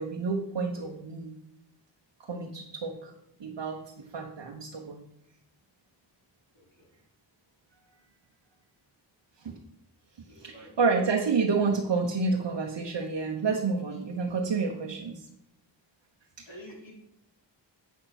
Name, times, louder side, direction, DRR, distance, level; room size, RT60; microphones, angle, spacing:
voice 1, 0.0-1.3 2.3-3.1 3.4-5.0 9.4-9.5 10.4-15.3, right 4 dB, 70° right, 1 dB, 1.2 m, -29 dB
voice 2, 6.5-6.9 10.3-10.8 16.5-16.9, equal, 75° left, -3 dB, 4.0 m, -48 dB
9.0 x 5.7 x 6.0 m, 0.80 s
wide cardioid pair, 75°, 44 cm